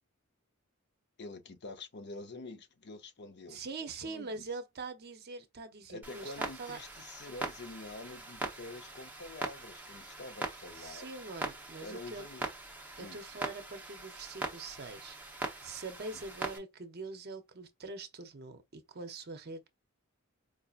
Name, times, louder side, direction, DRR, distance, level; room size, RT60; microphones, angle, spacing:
voice 1, 1.2-3.6 4.0-4.5 5.9-11.1 11.8-12.5 13.0-13.2 16.1-16.2, left 2 dB, 55° left, 0.6 m, -47 dB
voice 2, 3.5-6.8 10.8-12.2 13.0-19.7, right 3 dB, 50° right, 0.7 m, -44 dB
Clock, 6.0-16.6, right 2 dB, 10° right, 0.8 m, -42 dB
4.8 x 2.7 x 2.4 m
head